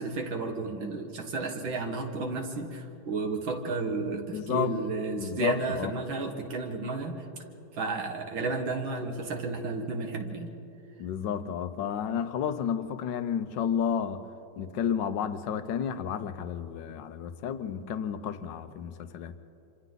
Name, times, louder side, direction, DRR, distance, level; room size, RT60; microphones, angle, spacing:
voice 1, 0.0-7.3 7.7-10.5, right 3 dB, 70° right, 3 dB, 2.5 m, -32 dB
voice 2, 4.3-4.8 5.1-5.9 11.0-14.3 14.6-19.3, left 8 dB, 70° left, 10 dB, 1.5 m, -31 dB
26.5 x 25.5 x 4.0 m, 2.7 s
omnidirectional pair, 2.2 m